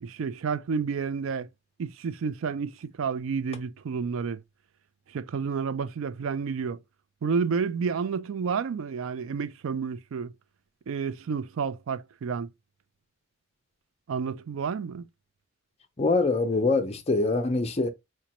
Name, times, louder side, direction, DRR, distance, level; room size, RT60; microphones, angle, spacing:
voice 1, 0.0-1.5 1.8-4.4 5.1-6.8 7.2-10.3 10.9-12.5 14.1-15.0, right 5 dB, 75° right, 0.4 m, -30 dB
voice 2, 16.0-17.9, left 3 dB, 30° left, 0.5 m, -24 dB
5.0 x 2.1 x 2.9 m
head